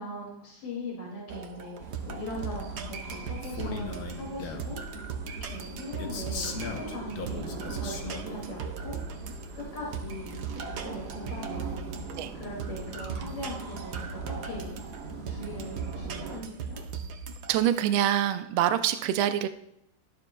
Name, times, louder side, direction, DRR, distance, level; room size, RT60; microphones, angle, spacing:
voice 1, 0.0-5.0 5.3-9.0 9.2-14.7 15.3-16.8, left 1 dB, 75° left, -5 dB, 3.3 m, -40 dB
sound 1, 1.3-17.8, right 5 dB, 65° right, 1.1 m, -39 dB
sound 2, 1.8-16.4, right 4 dB, 45° right, 0.8 m, -41 dB
Male speech man speaking, 3.4-4.8 6.0-8.4, left 4 dB, 55° left, 1.2 m, -38 dB
voice 2, 17.5-19.5, right 11 dB, 80° right, 9 dB, 1.4 m, -25 dB
12.0 x 12.0 x 2.3 m, 0.79 s
omnidirectional pair, 2.4 m